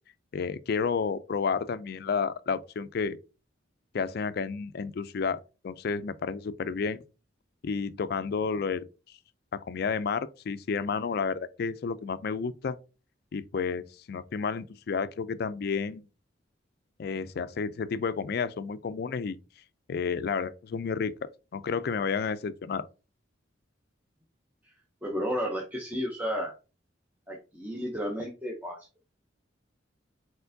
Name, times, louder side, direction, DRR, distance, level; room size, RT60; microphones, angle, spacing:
voice 1, 0.3-3.2 3.9-7.0 7.6-8.8 9.5-12.8 13.3-16.0 17.0-19.4 19.9-22.9, left 5 dB, 55° left, 0.3 m, -31 dB
voice 2, 25.0-26.5 27.3-29.0, equal, 10° right, 0.6 m, -33 dB
4.4 x 4.3 x 2.6 m
head